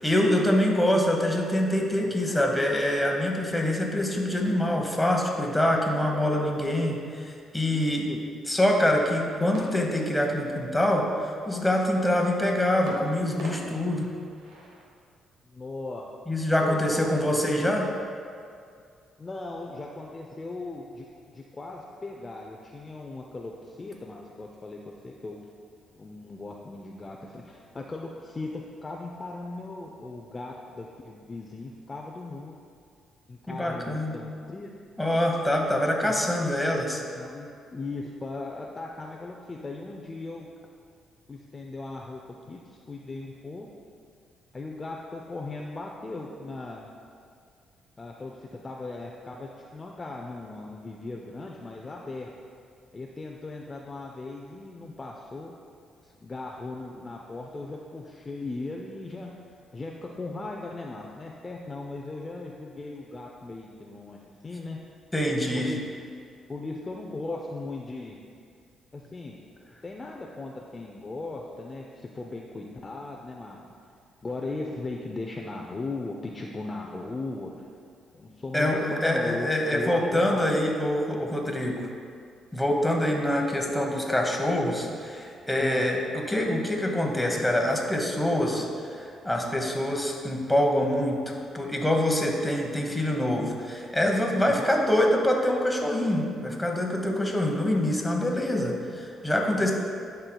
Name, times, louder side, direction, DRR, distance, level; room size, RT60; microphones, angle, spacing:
voice 1, 0.0-8.1 8.5-14.1 16.3-17.9 33.5-34.2 35.0-37.0 65.1-65.7 78.5-81.9 82.5-99.7, left 1 dB, 5° left, 0 dB, 1.0 m, -25 dB
voice 2, 7.7-8.2 15.5-16.1 16.6-17.2 19.2-21.1 21.3-24.8 25.0-25.4 25.9-32.6 33.3-34.7 36.1-36.2 37.2-40.5 41.3-42.2 42.5-43.7 44.5-46.9 48.0-52.3 52.9-55.5 56.2-59.3 59.7-64.8 65.5-65.8 66.5-68.2 68.9-69.4 69.8-73.6 74.2-77.7 78.1-80.6 85.6-85.9 94.6-94.8, left 2 dB, 30° left, -1 dB, 0.5 m, -38 dB
sound 1, 9.5-11.1 12.9-14.9, right 1 dB, 90° right, 0.9 m, -42 dB
11.0 x 4.4 x 2.3 m, 2.3 s
cardioid pair, 90°, 0 cm